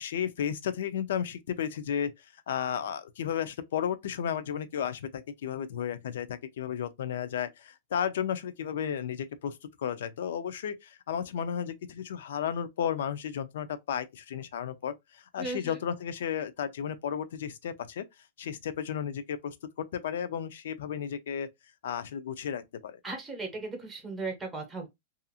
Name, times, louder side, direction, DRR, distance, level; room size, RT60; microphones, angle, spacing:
voice 1, 0.0-18.1 18.4-21.5 21.8-23.0, left 8 dB, 75° left, 0.4 m, -33 dB
voice 2, 15.4-15.8 23.0-24.9, right 3 dB, 5° right, 0.8 m, -36 dB
2.8 x 2.4 x 2.4 m
supercardioid pair, 170°, 0 cm